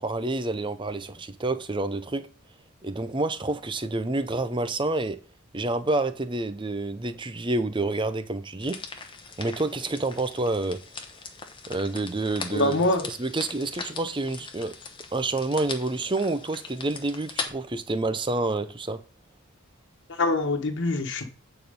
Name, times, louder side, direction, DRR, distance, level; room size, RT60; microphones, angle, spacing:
voice 1, 0.0-2.3 2.8-5.2 5.5-8.8 9.4-10.8 11.7-12.8 13.0-14.7 15.1-19.0, right 2 dB, 20° right, 0.6 m, -28 dB
sound 1, 8.6-17.5, left 4 dB, 20° left, 1.0 m, -40 dB
voice 2, 12.5-13.0 20.1-21.2, left 2 dB, 55° left, 1.4 m, -24 dB
9.0 x 4.4 x 5.3 m
head